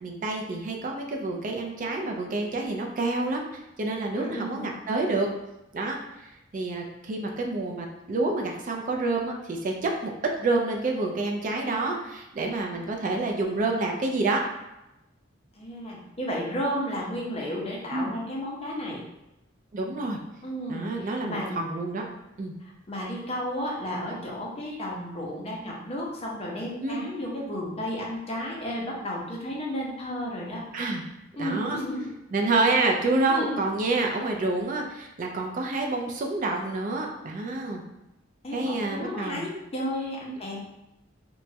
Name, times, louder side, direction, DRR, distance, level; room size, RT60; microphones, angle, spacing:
voice 1, 0.0-3.5 3.8-5.3 5.7-6.0 6.5-10.1 10.4-14.4 17.9-18.1 19.7-20.2 20.7-22.0 22.4-22.5 26.8-27.1 30.7-31.0 31.4-31.8 32.3-37.8 38.5-39.4 40.3-40.4, right 2 dB, 45° right, 1 dB, 0.3 m, -28 dB
voice 2, 4.1-4.8 15.5-19.0 20.4-21.6 22.6-30.6 31.4-32.1 33.3-33.6 38.4-40.6, equal, 30° left, -3 dB, 0.6 m, -33 dB
2.9 x 2.2 x 2.7 m, 0.92 s
head